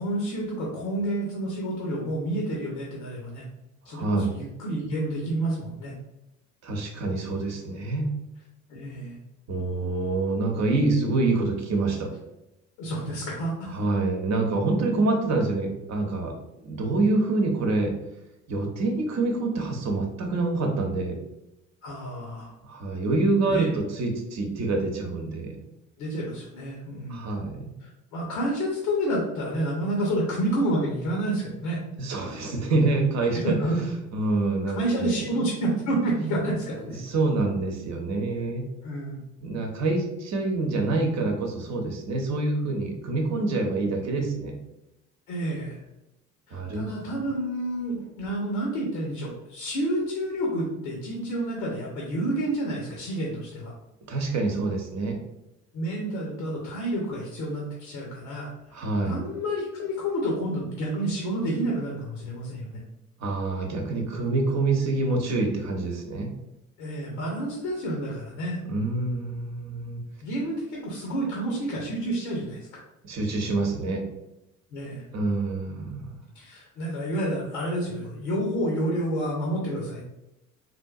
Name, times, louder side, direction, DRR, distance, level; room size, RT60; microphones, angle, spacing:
voice 1, 0.0-3.4 3.8-5.9 8.7-9.2 12.8-13.8 14.9-15.0 21.8-22.5 23.5-23.7 26.0-27.3 27.8-31.8 33.3-33.8 34.8-37.0 38.8-39.2 45.3-45.8 46.5-53.7 55.7-62.8 66.8-68.6 70.2-72.8 74.7-75.0 76.3-80.0, right 1 dB, 65° left, -2 dB, 0.9 m, -29 dB
voice 2, 3.9-4.3 6.6-8.1 9.5-12.1 13.7-16.3 16.6-17.9 18.5-21.2 22.6-25.6 27.1-27.7 32.0-35.2 36.9-38.6 39.4-44.5 46.5-47.1 54.1-55.2 58.7-59.2 63.2-66.3 68.7-70.0 73.0-74.0 75.1-76.2, right 3 dB, 45° right, 2 dB, 0.9 m, -26 dB
3.6 x 2.6 x 2.4 m, 0.90 s
figure-of-eight pair, 55°, 40 cm